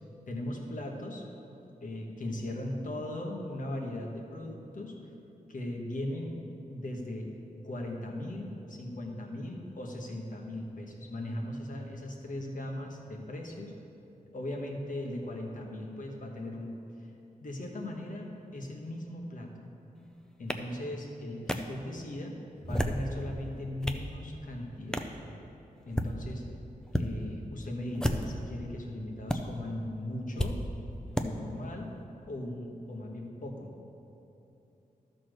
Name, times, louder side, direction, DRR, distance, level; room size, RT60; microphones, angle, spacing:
voice 1, 0.3-1.2 1.8-4.9 5.5-6.3 6.7-7.3 7.6-13.7 14.3-16.7 17.0-17.1 17.4-18.3 18.5-19.7 20.4-22.3 22.7-25.1 25.8-26.4 26.9-30.6 31.2-31.9 32.3-33.7, left 1 dB, 65° left, 1 dB, 1.3 m, -38 dB
sound 1, 20.5-20.6 21.5-21.6 22.6-23.1 23.6-24.1 24.9-25.1 25.8-26.1 26.9-27.1 27.9-28.4 29.3-29.4 30.4-30.5 31.1-31.3, equal, 5° left, 0.5 m, -31 dB
12.5 x 4.3 x 6.4 m, 2.9 s
wide cardioid pair, 120°, 15 cm